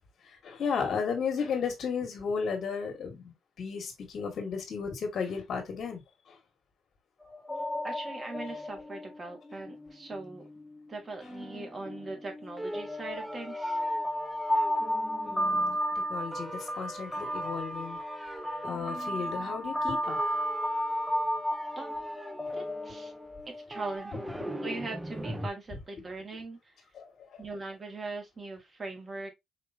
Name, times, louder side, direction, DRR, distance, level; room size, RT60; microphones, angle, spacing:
voice 1, 0.4-6.0 6.3-6.4 15.2-18.0 18.3-18.4 18.6-20.2 26.9-27.4, left 6 dB, 60° left, 1.8 m, -34 dB
sound 1, 7.2-10.8 11.4-23.9, equal, 10° left, 1.0 m, -33 dB
voice 2, 7.8-10.5 10.9-13.8 21.7-23.1 23.5-24.1 24.6-26.7 27.4-29.3, right 3 dB, 30° right, 1.9 m, -41 dB
sound 2, 11.2-12.3 12.6-15.9 16.3-19.8 20.0-25.5, right 1 dB, 10° right, 0.7 m, -42 dB
5.1 x 3.0 x 2.7 m
cardioid pair, 90°, 0 cm